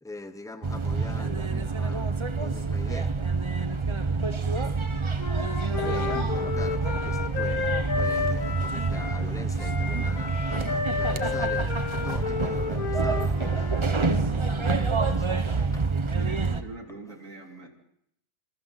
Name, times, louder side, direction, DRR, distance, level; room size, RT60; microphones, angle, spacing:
voice 1, 0.0-3.2 5.8-15.8 17.1-17.2, left 2 dB, 5° left, 8 dB, 0.9 m, -43 dB
sound 1, 0.6-16.6, right 4 dB, 25° right, 0.8 m, -27 dB
Wind instrument woodwind instrument, 5.2-9.2 9.6-13.8, left 6 dB, 65° left, 2.3 m, -31 dB
voice 2, 6.1-6.4 15.9-17.7, right 3 dB, 55° right, 2 dB, 3.2 m, -42 dB
27.0 x 26.5 x 4.2 m, 0.75 s
omnidirectional pair, 1.6 m